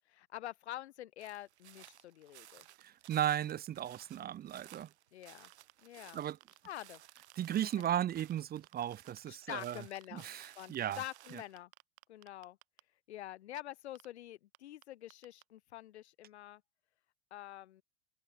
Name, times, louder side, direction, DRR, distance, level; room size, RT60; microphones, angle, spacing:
voice 1, 0.1-2.7 5.1-5.5 5.8-6.2 6.6-7.0 9.3-10.3 10.6-11.7 12.1-12.6 13.1-16.6 17.3-17.8, left 13 dB, 80° left, 4.7 m, -47 dB
sound 1, 1.2-11.6, right 13 dB, 80° right, 4.5 m, -58 dB
voice 2, 2.8-4.9 6.1-6.4 7.4-9.8 10.1-10.4 10.7-11.0, right 11 dB, 30° right, 0.8 m, -35 dB
sound 2, 5.4-5.7 6.1-8.3 8.6-9.1 9.5-11.3 11.6-12.8 13.6-13.7 14.0-14.1 14.5-14.6 14.8-14.9 15.1-15.4, right 28 dB, 60° right, 4.3 m, -58 dB
open air
hypercardioid pair, 105°, 33 cm